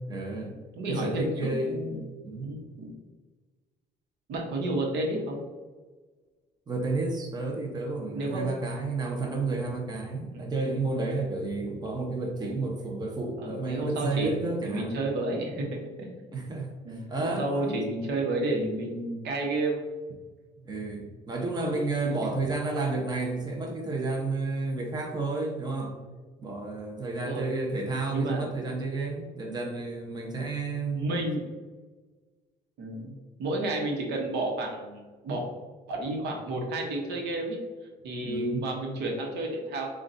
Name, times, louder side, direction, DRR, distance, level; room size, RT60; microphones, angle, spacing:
voice 1, 0.1-0.5 0.9-1.8 2.2-2.5 6.7-15.0 16.3-17.8 20.6-26.0 26.4-31.1 38.2-38.7, right 3 dB, 25° right, 0 dB, 0.9 m, -31 dB
voice 2, 0.8-2.0 2.4-2.9 4.3-5.4 8.1-8.5 10.3-10.5 13.4-14.3 14.7-16.1 16.8-19.8 27.1-27.5 28.1-28.4 30.9-31.4 32.8-35.4 35.9-37.6 38.0-40.0, right 2 dB, 80° right, 0 dB, 1.1 m, -31 dB
7.2 x 2.5 x 2.7 m, 1.4 s
cardioid pair, 110°, 17 cm